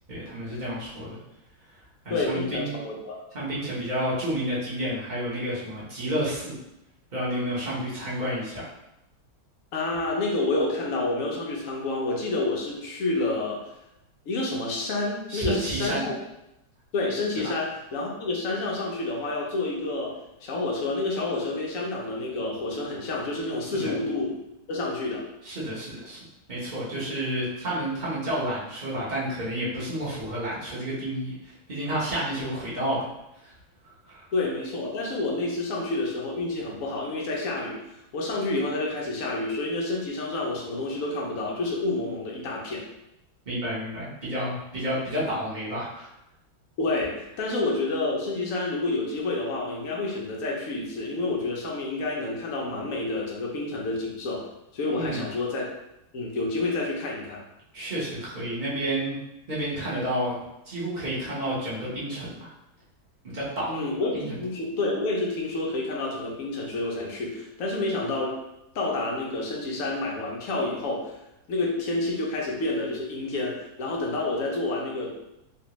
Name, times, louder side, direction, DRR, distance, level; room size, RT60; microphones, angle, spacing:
voice 1, 0.1-1.2 2.0-2.7 3.3-6.6 7.1-8.6 15.3-16.1 17.4-17.5 23.8-24.0 25.4-26.2 26.5-33.1 33.4-33.5 34.0-34.3 43.4-46.1 54.9-55.3 57.7-59.2 59.5-60.4 60.6-62.5 63.2-63.8 64.1-64.4, right 1 dB, 40° right, -8 dB, 0.7 m, -30 dB
voice 2, 2.1-3.2 9.7-13.6 14.3-16.1 16.9-20.1 20.4-24.4 24.7-25.3 34.3-42.8 46.8-54.4 54.7-55.6 56.1-57.4 63.7-68.4 68.7-71.1 71.5-75.2, left 2 dB, 75° left, -2 dB, 0.7 m, -29 dB
3.2 x 2.6 x 2.9 m, 0.87 s
omnidirectional pair, 2.2 m